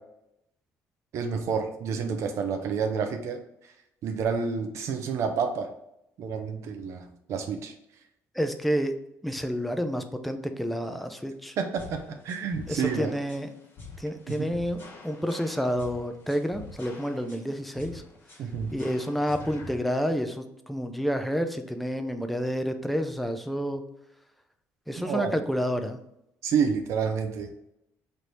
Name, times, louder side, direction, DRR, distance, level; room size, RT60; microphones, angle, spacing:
voice 1, 1.1-3.4 4.0-5.7 6.2-7.7 11.6-12.0 12.2-13.2 14.4-14.5 18.4-18.7 25.0-25.3 26.4-27.5, right 6 dB, 60° right, 6 dB, 0.5 m, -29 dB
voice 2, 8.3-8.9 9.2-11.6 12.7-13.5 14.0-18.0 18.7-23.8 24.9-26.0, equal, ahead, 7 dB, 0.3 m, -29 dB
sound 1, 11.8-19.8, left 3 dB, 45° left, 1.1 m, -45 dB
3.3 x 2.6 x 4.4 m, 0.82 s
cardioid pair, 135°, 6 cm